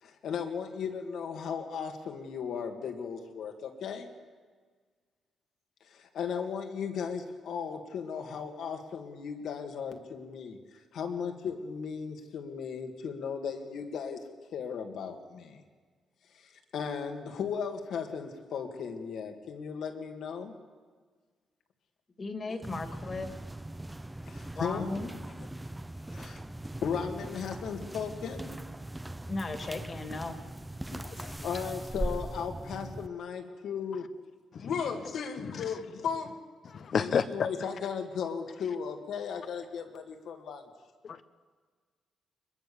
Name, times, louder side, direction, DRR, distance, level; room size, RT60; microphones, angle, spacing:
voice 1, 0.0-4.1 5.9-10.6 10.9-14.2 14.5-15.6 16.3-20.5 22.5-22.6 24.3-24.9 26.1-26.4 26.8-28.5 31.2-34.1 34.6-36.4 37.0-40.7, left 6 dB, 75° left, 2.5 m, -36 dB
voice 2, 22.2-23.3 24.5-25.1 29.2-30.4, left 3 dB, 35° left, 2.5 m, -36 dB
sound 1, 22.6-33.1, right 1 dB, 10° right, 0.7 m, -40 dB
voice 3, 30.9-31.4 34.5-34.7 35.4-35.6 36.7-37.2 41.0-41.2, left 6 dB, 60° left, 1.2 m, -31 dB
23.0 x 21.5 x 7.2 m
cardioid pair, 85°, 0 cm